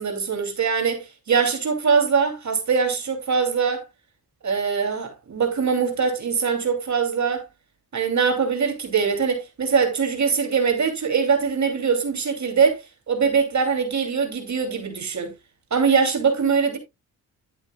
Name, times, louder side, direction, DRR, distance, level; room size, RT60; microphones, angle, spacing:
voice 1, 0.0-3.8 4.4-7.4 7.9-15.3 15.7-16.8, right 5 dB, 50° right, 2.8 m, -22 dB
11.5 x 8.0 x 2.3 m
cardioid pair, 75°, 35 cm